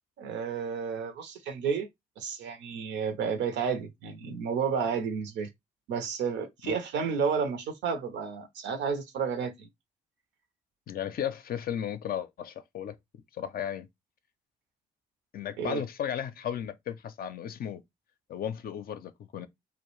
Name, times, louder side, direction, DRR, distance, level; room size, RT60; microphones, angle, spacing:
voice 1, 0.2-1.9 2.2-5.5 5.9-9.7 15.6-15.8, right 6 dB, 70° right, 0.6 m, -31 dB
voice 2, 10.9-13.0 13.3-13.9 15.3-17.8 18.3-19.5, left 9 dB, 50° left, 0.5 m, -35 dB
2.3 x 2.0 x 3.0 m
hypercardioid pair, 45°, 19 cm